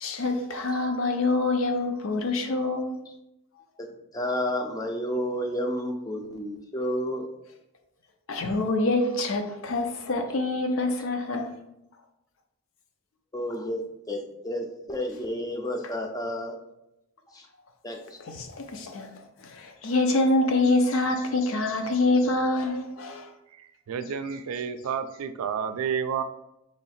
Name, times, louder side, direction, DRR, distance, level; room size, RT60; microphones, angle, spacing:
voice 1, 0.0-3.0 8.3-11.5 18.2-19.1 19.4-23.3, left 2 dB, 65° left, 5 dB, 0.5 m, -26 dB
voice 2, 3.8-7.3 13.3-16.6 17.3-17.5 17.8-18.2, equal, 15° left, 2 dB, 0.4 m, -31 dB
voice 3, 23.6-26.2, right 7 dB, 85° right, 10 dB, 0.4 m, -30 dB
3.2 x 2.7 x 4.1 m, 0.85 s
head